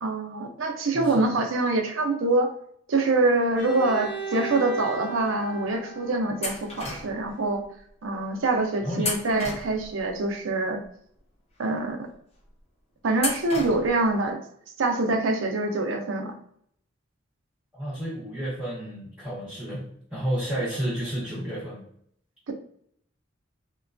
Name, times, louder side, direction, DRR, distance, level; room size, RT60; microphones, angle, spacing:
voice 1, 0.0-2.5 2.9-7.7 8.0-10.8 11.6-12.1 13.0-14.4 14.8-16.3 22.5-22.6, right 2 dB, 80° right, 4 dB, 0.5 m, -25 dB
voice 2, 0.9-1.3 8.8-9.1 17.7-19.8 20.1-21.8, equal, 5° right, -9 dB, 0.7 m, -31 dB
Bowed string instrument, 3.6-7.4, right 3 dB, 70° left, 0.6 m, -38 dB
sound 1, 6.4-7.3 9.0-10.1 13.2-14.1, left 2 dB, 30° left, 0.6 m, -33 dB
3.0 x 2.2 x 2.5 m, 0.67 s
head